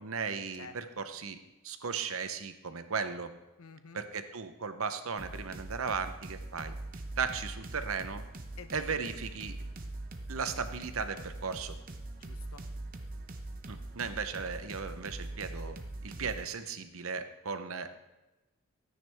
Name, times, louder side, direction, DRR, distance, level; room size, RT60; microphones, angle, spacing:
voice 1, 0.0-1.4 1.6-3.3 3.9-6.7 7.2-8.2 8.7-9.6 10.3-11.7 13.7-15.8 16.0-18.0, right 5 dB, 65° right, 9 dB, 0.8 m, -36 dB
voice 2, 3.6-4.0 8.6-9.0 12.2-12.6 16.2-16.3, left 5 dB, 70° left, 10 dB, 0.8 m, -50 dB
sound 1, 5.2-16.5, right 2 dB, 40° right, 0.9 m, -42 dB
13.5 x 9.6 x 3.5 m, 1.0 s
head